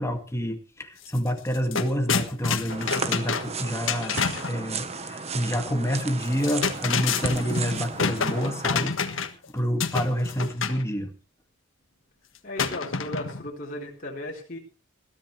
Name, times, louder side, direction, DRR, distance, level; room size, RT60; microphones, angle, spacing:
voice 1, 0.0-4.2 4.5-8.9 9.2-11.1, equal, 15° left, 4 dB, 2.0 m, -28 dB
sound 1, 1.0-1.2 1.5-4.6 6.2-9.4 9.8-10.8 12.6-13.5, left 5 dB, 70° left, 1.5 m, -28 dB
sound 2, 2.7-8.7, right 5 dB, 30° right, 1.1 m, -35 dB
voice 2, 12.4-14.6, left 1 dB, 40° left, -3 dB, 3.9 m, -36 dB
21.0 x 13.5 x 3.3 m, 0.33 s
head